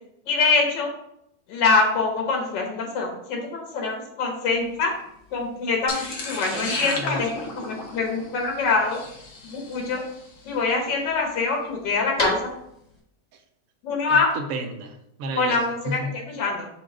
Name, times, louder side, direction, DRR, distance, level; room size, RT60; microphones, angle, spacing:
voice 1, 0.3-0.9 1.5-4.9 5.3-9.0 9.5-10.0 10.4-12.5 13.8-14.3 15.4-16.7, left 4 dB, 85° left, 1 dB, 1.6 m, -24 dB
sound 1, 4.5-13.0, left 1 dB, 25° left, 1.3 m, -38 dB
sound 2, 5.9-10.2, left 3 dB, 60° left, 0.9 m, -33 dB
voice 2, 6.5-7.2 14.1-15.6 15.9-16.1, right 2 dB, 70° right, 6 dB, 0.9 m, -32 dB
4.4 x 2.4 x 4.6 m, 0.77 s
omnidirectional pair, 1.9 m